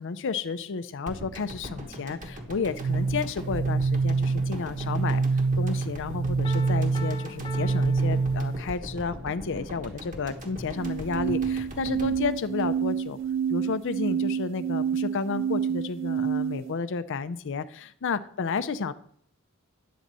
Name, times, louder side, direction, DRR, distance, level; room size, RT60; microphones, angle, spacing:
voice 1, 0.0-5.2 5.6-13.2 13.5-18.9, left 5 dB, 60° left, 12 dB, 0.5 m, -31 dB
sound 1, 1.1-13.4 13.7-13.8, equal, 40° right, 1.3 m, -40 dB
sound 2, 2.8-8.7 10.8-16.8, right 5 dB, 60° right, 0.3 m, -27 dB
Piano, 6.4-9.0, left 3 dB, 25° left, 1.1 m, -42 dB
10.0 x 4.0 x 7.4 m, 0.65 s
head